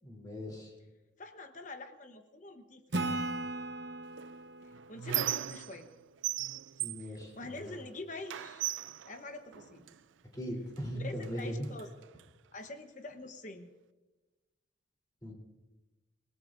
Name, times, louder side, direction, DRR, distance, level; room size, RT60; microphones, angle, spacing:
voice 1, 0.0-0.7 6.8-7.7 10.3-11.7 15.2-15.3, equal, 20° left, -1 dB, 3.3 m, -39 dB
voice 2, 1.2-3.3 4.9-5.9 7.0-8.6 9.0-9.8 10.9-11.9 12.5-13.7, left 2 dB, 40° left, 6 dB, 1.0 m, -45 dB
Acoustic guitar / Strum, 2.9-6.4, right 2 dB, 60° right, 1.0 m, -38 dB
Squeak, 4.2-5.9 6.2-7.9 8.3-10.0 10.8-10.9 11.2-12.2, right 13 dB, 75° right, 0.4 m, -38 dB
27.5 x 18.0 x 2.6 m, 1.1 s
head